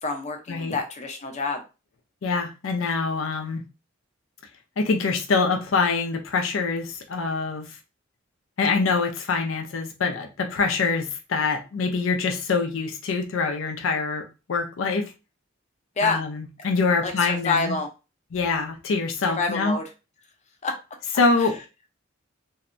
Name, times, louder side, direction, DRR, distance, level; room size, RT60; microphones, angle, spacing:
voice 1, 0.0-1.6 16.0-16.2 17.0-17.9 19.3-19.9 20.6-20.8 21.4-21.5, left 3 dB, 35° left, 0.5 m, -27 dB
voice 2, 2.2-3.6 4.8-7.8 8.6-15.1 16.0-17.7 18.3-19.8 21.2-21.6, left 4 dB, 85° left, 0.5 m, -25 dB
2.6 x 2.1 x 2.5 m
head